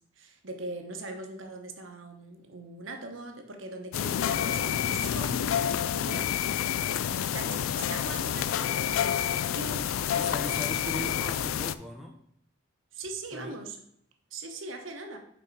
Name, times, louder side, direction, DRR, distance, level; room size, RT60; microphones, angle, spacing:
voice 1, 0.2-6.3 7.0-9.9 12.9-13.8 14.3-15.2, right 2 dB, 70° right, 4 dB, 1.1 m, -41 dB
sound 1, 3.9-11.7, left 9 dB, 85° left, 0.3 m, -29 dB
voice 2, 10.1-12.2 13.3-13.6, right 1 dB, ahead, 1 dB, 0.5 m, -39 dB
6.3 x 4.6 x 4.6 m, 0.72 s
head